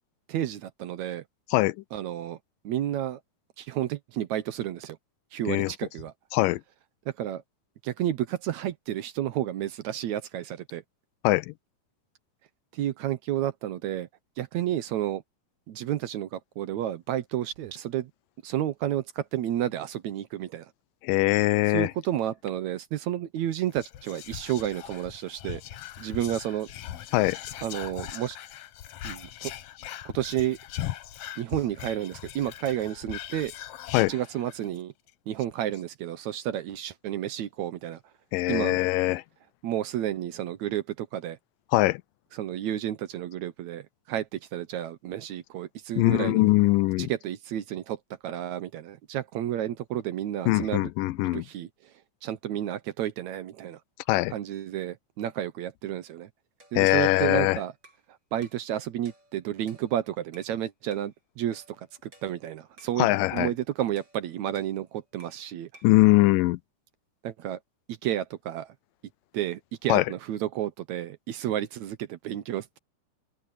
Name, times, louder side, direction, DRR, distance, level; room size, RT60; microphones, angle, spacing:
voice 1, 0.3-1.2 1.9-2.4 2.6-3.2 3.6-5.0 5.3-6.1 7.2-7.4 7.8-10.8 12.7-14.1 14.4-15.2 15.7-18.1 18.4-20.7 21.7-25.6 26.0-26.7 27.6-28.4 29.0-29.5 30.1-30.6 31.4-33.5 34.1-34.9 35.3-38.0 38.5-38.8 39.6-41.4 42.4-46.4 47.0-48.0 48.2-50.9 51.3-51.7 52.2-53.8 54.3-56.3 56.7-57.7 58.3-61.6 62.0-63.1 63.3-65.7 67.2-67.6 68.0-68.7 69.3-72.8, right 12 dB, 70° right, 2.0 m, -31 dB
voice 2, 11.2-11.5 21.0-21.9 27.1-27.4 33.9-34.1 38.3-39.2 41.7-42.0 46.0-47.1 50.5-51.5 54.1-54.3 56.8-57.6 63.0-63.5 65.8-66.6 69.9-70.1, left 19 dB, 85° left, 2.3 m, -22 dB
Whispering, 23.7-34.8 35.1-35.2 35.4-35.8, left 12 dB, 70° left, 1.5 m, -40 dB
sound 1, 56.6-58.1 58.4-58.7 59.1-60.6 60.9-61.2 61.5-63.0 63.4-63.6 64.0-65.5 65.7-66.0, right 2 dB, 30° right, 7.3 m, -57 dB
open air
omnidirectional pair, 3.8 m